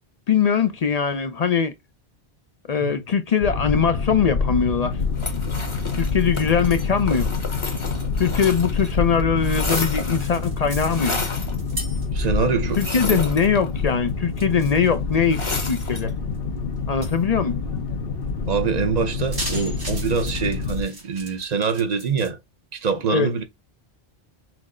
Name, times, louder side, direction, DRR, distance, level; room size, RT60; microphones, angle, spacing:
voice 1, 0.3-1.7 2.7-5.0 6.0-7.3 8.2-11.2 12.8-16.1 16.9-17.6 23.1-23.3, left 6 dB, 50° left, 0.6 m, -21 dB
Boat Water vehicle, 3.4-20.8, left 4 dB, 65° left, 0.9 m, -27 dB
sound 1, 5.2-8.9 9.2-10.4 10.9-11.6 12.7-13.9 15.3-16.1, left 3 dB, 30° left, 0.9 m, -31 dB
sound 2, 9.7-12.4 12.7-13.6 13.9-15.9 16.3-16.4 17.0-17.2 19.1-22.3, right 1 dB, 75° right, 2.8 m, -37 dB
voice 2, 12.1-13.2 18.5-22.4 22.7-23.4, right 5 dB, 45° right, 0.7 m, -24 dB
6.0 x 2.1 x 3.6 m
omnidirectional pair, 1.1 m